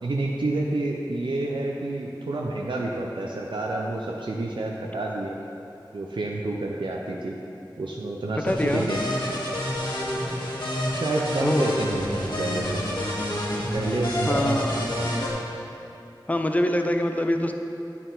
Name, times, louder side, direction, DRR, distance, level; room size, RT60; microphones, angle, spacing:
voice 1, 0.0-5.4 5.9-7.3 7.8-9.1 10.9-12.8 13.7-14.7 15.0-15.1, right 2 dB, 80° right, -2 dB, 0.5 m, -29 dB
voice 2, 8.4-8.9 11.4-12.0 14.3-14.8 16.3-17.5, left 1 dB, 20° left, 5 dB, 0.4 m, -25 dB
sound 1, 8.5-15.3, left 1 dB, 70° left, 1.5 m, -29 dB
8.9 x 4.2 x 3.8 m, 2.8 s
wide cardioid pair, 50°, 8 cm